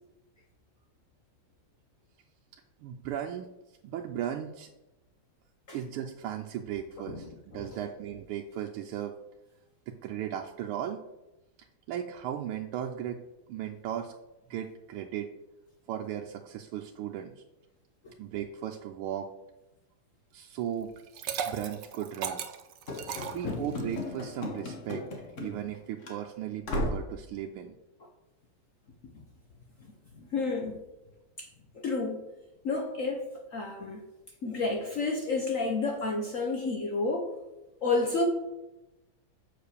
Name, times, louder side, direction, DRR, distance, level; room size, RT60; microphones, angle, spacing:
voice 1, 2.8-3.5 3.8-4.7 5.7-9.1 9.9-11.0 11.6-13.2 13.5-14.1 14.5-15.3 15.9-17.4 18.2-19.3 20.3-20.9 21.5-22.4 23.3-25.0 25.4-27.7, right 10 dB, 85° right, 3 dB, 1.5 m, -36 dB
Liquid, 21.0-24.0, right 8 dB, 65° right, 1.3 m, -36 dB
Run / Slam, 22.9-25.8 26.0-26.2 26.6-27.1, left 1 dB, 40° left, 1.4 m, -35 dB
voice 2, 30.3-30.8 31.4-31.5 31.7-32.2 32.6-34.0 34.4-37.3 37.8-38.2, left 3 dB, 55° left, 2 dB, 0.9 m, -30 dB
6.9 x 4.9 x 6.6 m, 0.98 s
omnidirectional pair, 2.4 m